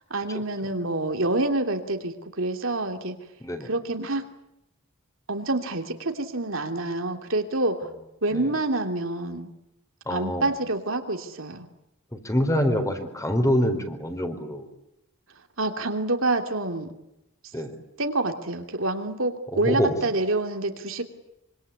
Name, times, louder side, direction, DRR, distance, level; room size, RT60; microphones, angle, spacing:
voice 1, 0.1-3.2 3.6-4.2 5.3-7.9 8.2-9.5 10.1-11.7 15.6-16.9 18.0-21.0, right 2 dB, 65° right, 5 dB, 3.0 m, -27 dB
voice 2, 10.1-10.5 12.1-14.7 17.5-17.7 19.5-20.0, equal, 15° left, 7 dB, 4.2 m, -25 dB
26.0 x 25.0 x 8.5 m, 0.86 s
head